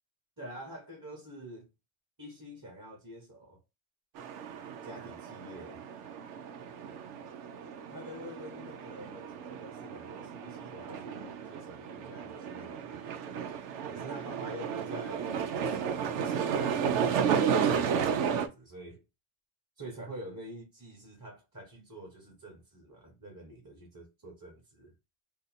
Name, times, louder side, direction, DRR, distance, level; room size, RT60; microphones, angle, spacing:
voice 1, 0.4-1.7 2.2-3.6 4.8-5.8 7.9-13.1 13.9-19.0 19.8-24.9, right 1 dB, 20° right, 0.8 m, -47 dB
sound 1, 4.2-18.5, right 7 dB, 90° right, 0.9 m, -33 dB
2.7 x 2.5 x 4.0 m
omnidirectional pair, 1.2 m